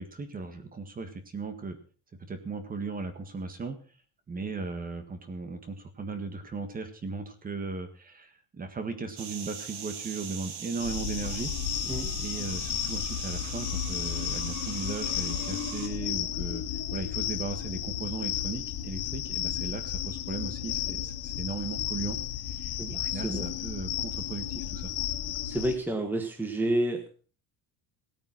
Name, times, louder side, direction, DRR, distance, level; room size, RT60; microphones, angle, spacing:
voice 1, 0.0-1.8 2.2-3.8 4.3-11.5 12.2-16.6 16.9-22.2 22.5-24.9, right 4 dB, 20° right, 9 dB, 1.6 m, -37 dB
sound 1, 9.2-15.9, right 7 dB, 70° right, 3.0 m, -40 dB
sound 2, 10.8-25.8, left 11 dB, 65° left, 1.9 m, -33 dB
voice 2, 22.8-23.5 25.4-27.1, right 1 dB, 5° right, 4 dB, 1.4 m, -30 dB
17.5 x 9.0 x 6.0 m, 0.39 s
cardioid pair, 170°, 40 cm